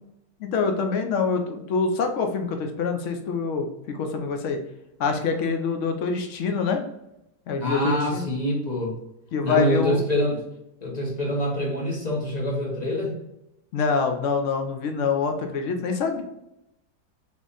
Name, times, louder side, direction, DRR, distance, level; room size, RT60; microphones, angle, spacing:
voice 1, 0.4-4.6 5.0-6.8 7.5-8.2 9.3-10.0 13.7-16.2, left 5 dB, 60° left, 5 dB, 0.8 m, -25 dB
voice 2, 7.6-8.9 9.4-10.4 10.8-13.1, equal, 30° left, -2 dB, 0.8 m, -25 dB
3.7 x 3.1 x 3.9 m, 0.85 s
omnidirectional pair, 1.8 m